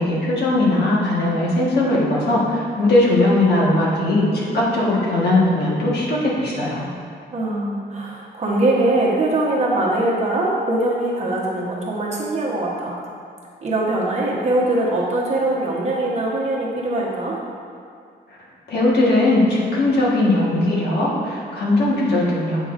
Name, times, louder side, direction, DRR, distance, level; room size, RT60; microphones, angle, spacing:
voice 1, 0.0-6.8 18.7-22.6, left 2 dB, 70° left, -5 dB, 1.5 m, -19 dB
voice 2, 7.3-13.0 13.6-17.4, right 2 dB, 40° right, -4 dB, 1.1 m, -22 dB
8.1 x 5.8 x 2.6 m, 2.3 s
wide cardioid pair, 165°, 18 cm